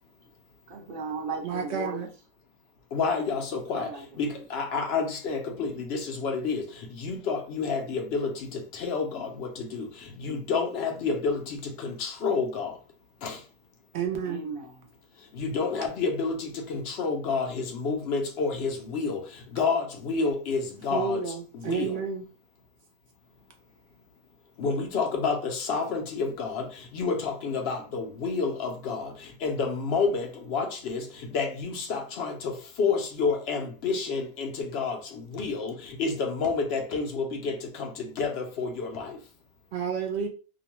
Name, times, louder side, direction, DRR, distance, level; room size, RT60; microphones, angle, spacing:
voice 1, 0.7-2.0 3.7-4.5 14.2-14.9, right 3 dB, 55° right, 0.9 m, -36 dB
voice 2, 1.4-2.1 13.9-14.4 20.9-22.2 39.7-40.3, right 6 dB, 80° right, 0.9 m, -30 dB
voice 3, 2.9-3.9 4.2-12.8 13.2-13.4 15.3-21.2 21.5-22.0 24.6-39.2, left 4 dB, 75° left, 0.8 m, -29 dB
2.6 x 2.1 x 2.9 m
omnidirectional pair, 1.1 m